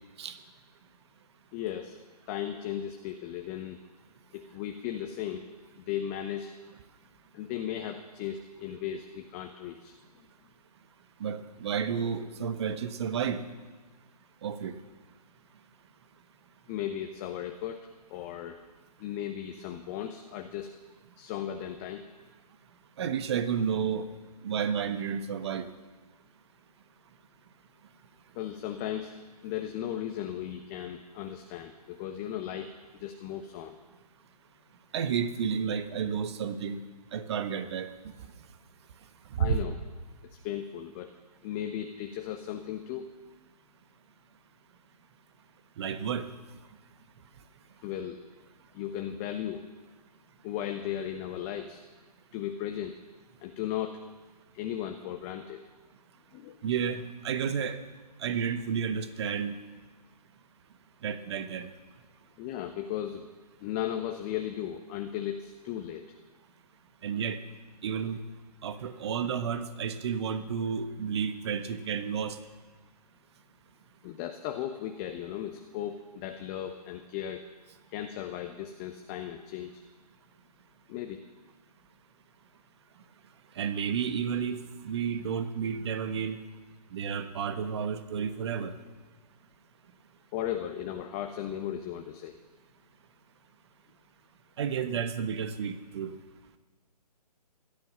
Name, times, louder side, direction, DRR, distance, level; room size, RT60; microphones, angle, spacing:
voice 1, 1.5-2.0 2.3-3.8 4.3-5.5 5.8-6.5 7.3-10.2 16.7-18.6 19.0-20.7 21.2-22.0 28.3-29.1 29.4-33.8 39.4-39.7 40.2-41.1 41.4-43.1 47.8-48.2 48.7-49.6 50.4-51.8 52.3-53.0 53.4-54.0 54.5-55.6 56.3-56.6 62.4-63.3 63.6-66.0 74.0-77.4 77.9-79.8 80.9-81.2 90.3-92.3, left 10 dB, 20° left, 6 dB, 0.9 m, -36 dB
voice 2, 11.2-13.4 14.4-14.8 23.0-24.1 24.4-25.7 34.9-36.8 37.1-38.1 39.3-39.6 45.8-46.3 56.6-57.8 58.2-59.6 61.0-61.7 67.0-67.4 67.8-68.2 68.6-72.4 83.5-86.4 86.9-88.7 94.6-96.1, right 7 dB, 40° right, 10 dB, 1.3 m, -31 dB
16.5 x 12.5 x 6.8 m, 1.3 s
figure-of-eight pair, 135°, 21 cm